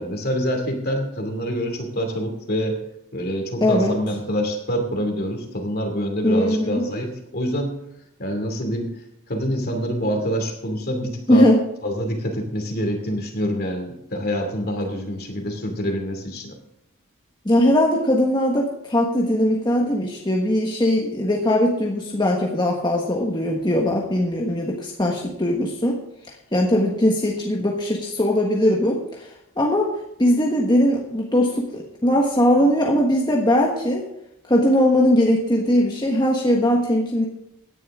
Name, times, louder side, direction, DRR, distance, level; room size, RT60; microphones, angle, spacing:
voice 1, 0.0-2.8 3.1-7.7 8.2-8.9 9.3-11.5 11.8-16.6, equal, 45° left, 4 dB, 2.6 m, -26 dB
voice 2, 3.6-4.0 6.2-6.8 11.3-11.6 17.4-26.0 26.5-29.9 30.2-34.0 34.5-37.2, left 1 dB, 20° left, -2 dB, 1.4 m, -20 dB
17.0 x 10.5 x 3.7 m, 0.82 s
head